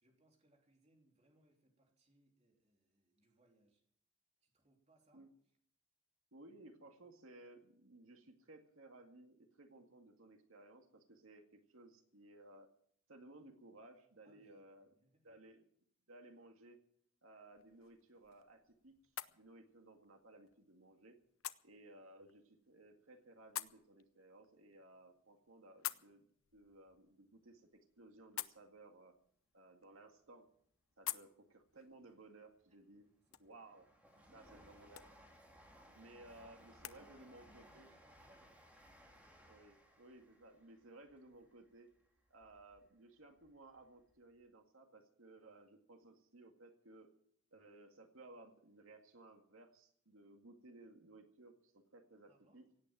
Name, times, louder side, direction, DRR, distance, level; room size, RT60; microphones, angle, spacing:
voice 1, 0.0-3.8 4.4-5.3 14.2-15.4 31.0-31.3 32.7-33.6 34.1-34.9 36.8-38.9 52.3-52.7, right 1 dB, 35° right, 3.3 m, -73 dB
voice 2, 6.3-12.7 13.1-14.9 15.2-15.7 16.1-16.8 17.2-21.2 21.6-29.2 29.5-30.5 31.0-33.0 33.4-33.9 34.3-35.0 36.0-37.9 39.5-41.9 42.3-47.1 47.5-52.6, right 2 dB, 90° right, 2.1 m, -59 dB
sound 1, 17.5-37.0, left 13 dB, 85° left, 0.8 m, -52 dB
Train, 32.6-42.8 43.2-44.1 44.4-44.5, equal, 5° right, 3.4 m, -63 dB
17.0 x 8.8 x 9.1 m
head